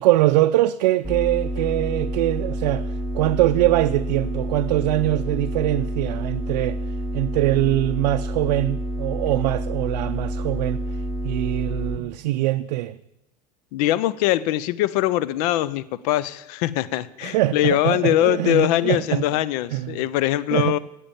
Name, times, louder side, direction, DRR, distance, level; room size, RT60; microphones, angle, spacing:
voice 1, 0.0-2.9 3.1-6.8 7.1-10.8 11.2-13.0 17.2-19.2 19.7-20.0 20.5-20.8, right 16 dB, 75° right, 0.5 m, -22 dB
sound 1, 1.0-12.0, equal, 5° left, 2.4 m, -28 dB
voice 2, 13.7-20.8, left 14 dB, 65° left, 0.6 m, -22 dB
10.0 x 8.6 x 7.2 m
hypercardioid pair, 100°, 21 cm